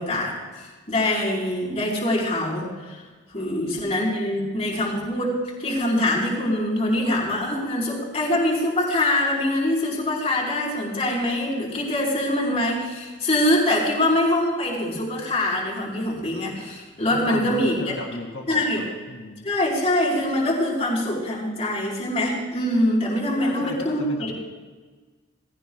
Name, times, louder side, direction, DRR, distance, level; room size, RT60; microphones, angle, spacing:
voice 1, 0.0-3.0 3.3-17.8 18.5-18.8 19.4-24.3, left 1 dB, 30° left, -4 dB, 4.3 m, -24 dB
voice 2, 17.1-19.5 23.4-24.3, left 2 dB, 85° left, -1 dB, 2.2 m, -35 dB
19.0 x 17.0 x 2.3 m, 1.4 s
head